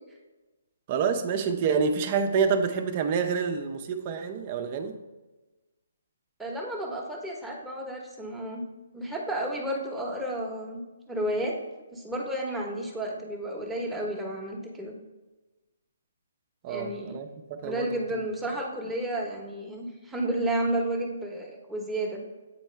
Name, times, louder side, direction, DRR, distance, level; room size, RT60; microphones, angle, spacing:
voice 1, 0.9-4.9 16.6-18.2, right 6 dB, 35° right, 6 dB, 0.6 m, -28 dB
voice 2, 6.4-8.7 8.9-11.5 11.9-14.9 16.7-17.1 17.6-22.2, right 1 dB, 5° right, -2 dB, 1.0 m, -32 dB
8.3 x 4.5 x 3.2 m, 1.2 s
hypercardioid pair, 140°, 0 cm